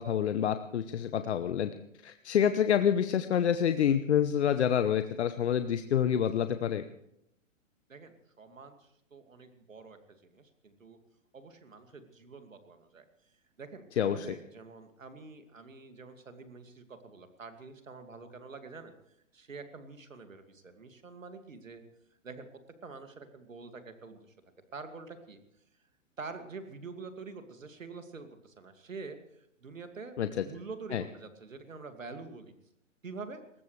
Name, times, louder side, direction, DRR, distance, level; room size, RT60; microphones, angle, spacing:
voice 1, 0.0-1.7 2.0-6.8 14.0-14.3 30.2-30.4 30.9-31.0, left 9 dB, 55° left, 10 dB, 1.0 m, -27 dB
voice 2, 7.9-10.0 10.3-11.0 11.3-13.0 13.6-18.9 19.3-21.8 22.2-22.5 22.8-24.2 24.7-25.4 26.2-32.5 33.0-33.4, right 4 dB, 75° right, 7 dB, 2.5 m, -46 dB
21.5 x 20.0 x 3.3 m, 0.79 s
figure-of-eight pair, 115°, 39 cm